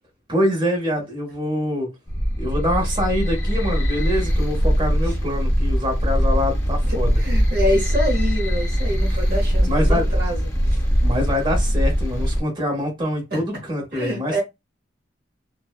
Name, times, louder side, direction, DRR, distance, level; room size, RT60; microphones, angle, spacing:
voice 1, 0.3-1.9 2.4-7.2 9.1-9.2 9.7-10.1 11.0-14.4, left 1 dB, 25° right, 0.9 m, -25 dB
sound 1, 2.1-12.4, equal, 15° left, 0.6 m, -21 dB
voice 2, 6.8-10.8 13.3-13.4 13.9-14.4, equal, 55° right, 0.8 m, -26 dB
2.6 x 2.1 x 2.3 m
head